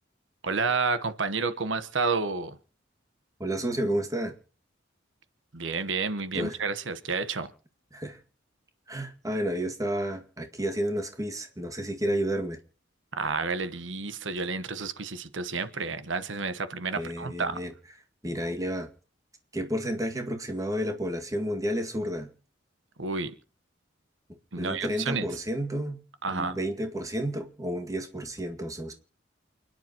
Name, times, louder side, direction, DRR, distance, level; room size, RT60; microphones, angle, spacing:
voice 1, 0.4-2.6 5.5-7.5 13.1-17.6 23.0-23.3 24.5-25.4 26.2-26.6, right 4 dB, 90° right, 12 dB, 1.1 m, -30 dB
voice 2, 3.4-4.3 6.3-6.6 7.9-8.2 8.9-12.6 17.0-17.7 18.2-18.9 19.5-22.3 24.6-26.0 26.3-28.9, equal, 20° right, 4 dB, 2.0 m, -31 dB
29.0 x 10.5 x 3.0 m, 0.37 s
head